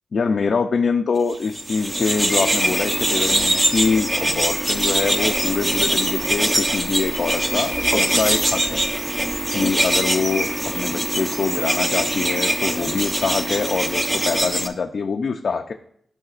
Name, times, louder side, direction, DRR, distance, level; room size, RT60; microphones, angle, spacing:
voice 1, 0.1-8.8 9.5-15.7, left 5 dB, 55° left, 4 dB, 0.4 m, -24 dB
sound 1, 1.4-14.7, right 1 dB, 15° right, 0.6 m, -22 dB
Walk footsteps, 2.6-10.5, right 1 dB, 50° right, 2.0 m, -42 dB
14.0 x 5.6 x 2.5 m, 0.67 s
wide cardioid pair, 115°, 0 cm